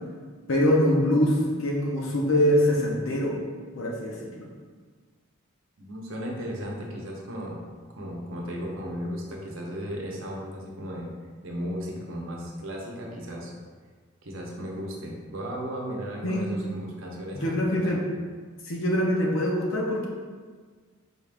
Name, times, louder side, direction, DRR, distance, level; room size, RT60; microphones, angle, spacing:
voice 1, 0.5-3.4 3.7-4.5 16.2-16.4 17.3-18.0 18.6-20.1, left 1 dB, 75° left, -2 dB, 0.7 m, -24 dB
voice 2, 5.8-7.6 8.0-11.1 11.4-13.5 14.2-18.0, equal, 70° right, -1 dB, 0.7 m, -35 dB
4.2 x 2.5 x 3.3 m, 1.5 s
head